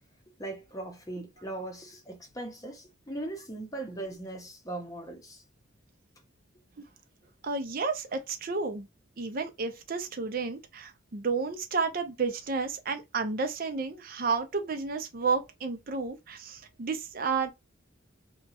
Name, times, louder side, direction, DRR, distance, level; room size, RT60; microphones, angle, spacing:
voice 1, 0.4-5.4, right 2 dB, 15° left, 0.7 m, -39 dB
voice 2, 7.4-8.9 9.2-17.5, right 4 dB, 45° right, 0.5 m, -31 dB
2.8 x 2.3 x 2.8 m
head